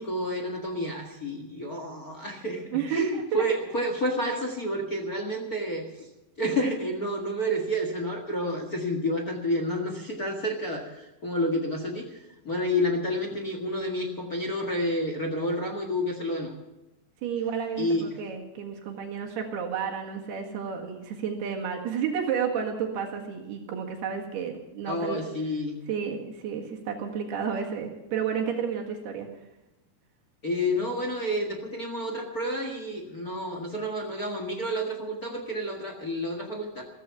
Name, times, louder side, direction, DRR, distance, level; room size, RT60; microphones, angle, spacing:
voice 1, 0.0-6.1 6.4-12.2 12.4-16.5 17.8-18.1 24.8-25.8 30.4-36.8, equal, 60° left, 2 dB, 0.9 m, -30 dB
voice 2, 2.7-3.4 17.2-25.3 25.9-29.3, right 7 dB, 75° right, 2 dB, 3.7 m, -31 dB
15.5 x 15.0 x 5.8 m, 0.97 s
omnidirectional pair, 4.7 m